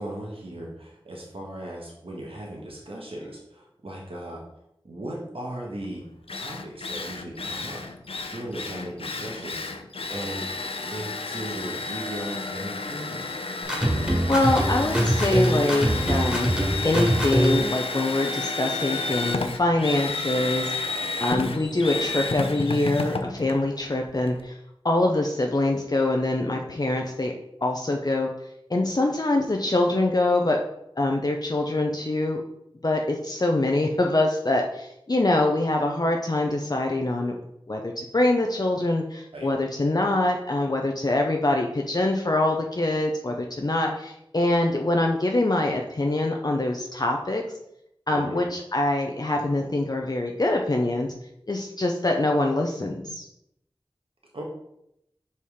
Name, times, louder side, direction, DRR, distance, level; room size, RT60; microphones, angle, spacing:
voice 1, 0.0-4.4 4.8-6.0 6.3-7.9 8.3-9.7 10.1-10.5 10.8-13.3 39.3-39.5 48.1-48.4 54.3-54.4, right 1 dB, 80° right, -2 dB, 1.4 m, -37 dB
Drill, 5.8-5.9 6.3-24.4, left 3 dB, 85° left, 0.5 m, -31 dB
sound 1, 13.7-17.7, equal, 10° right, 1.8 m, -23 dB
voice 2, 14.3-16.5 16.8-20.9 21.2-24.6 24.8-27.3 27.6-28.3 28.7-30.6 31.0-32.4 32.8-37.4 37.7-47.4 48.1-51.1 51.5-53.3, left 2 dB, 45° left, 1 dB, 0.6 m, -24 dB
5.4 x 4.3 x 4.8 m, 0.79 s
wide cardioid pair, 55°, 9 cm